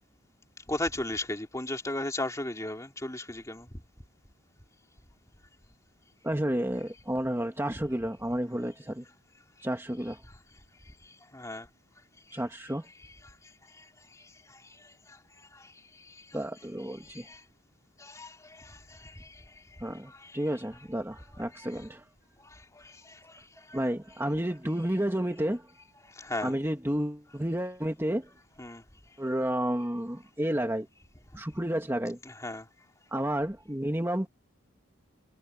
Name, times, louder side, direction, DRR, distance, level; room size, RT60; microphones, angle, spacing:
voice 1, 0.7-3.7 10.3-10.4 11.0-11.7 12.3-12.4 13.2-13.3 13.6-16.4 17.0-17.4 18.0-20.4 21.7-21.9 22.4-23.8 26.0-26.5 28.6-28.8 32.2-32.7, left 1 dB, 15° left, 3.3 m, -38 dB
voice 2, 6.2-9.0 9.6-10.2 12.3-12.9 16.3-17.3 19.8-22.0 23.7-25.7 26.4-28.3 29.2-30.9 31.3-32.2 33.1-34.3, right 1 dB, 15° right, 1.8 m, -31 dB
head